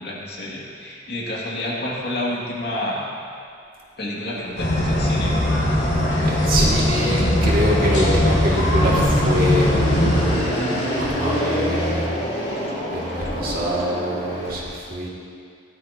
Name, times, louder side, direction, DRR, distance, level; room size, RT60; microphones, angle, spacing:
voice 1, 0.0-3.1 4.0-5.4, left 1 dB, 60° left, -4 dB, 2.4 m, -29 dB
Fixed-wing aircraft airplane, 4.3-14.5, equal, 40° left, 3.5 m, -27 dB
sound 1, 4.6-10.3, left 1 dB, 75° left, 3.5 m, -20 dB
voice 2, 5.9-12.2 12.9-15.1, equal, 50° right, -4 dB, 2.4 m, -25 dB
15.5 x 12.5 x 3.0 m, 2.3 s
head